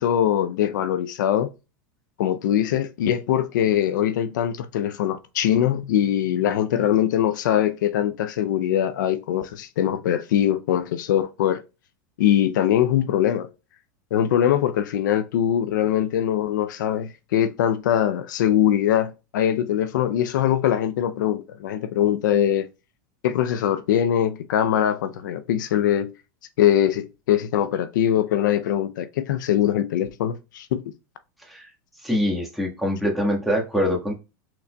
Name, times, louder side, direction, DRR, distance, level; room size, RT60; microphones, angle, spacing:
voice 1, 0.0-1.5 2.2-11.6 12.2-13.5 14.1-22.7 23.2-26.1 26.6-30.8, left 10 dB, 80° left, 0.5 m, -22 dB
voice 2, 32.0-34.1, equal, ahead, 1.5 m, -24 dB
5.9 x 3.8 x 2.2 m
supercardioid pair, 125°, 10 cm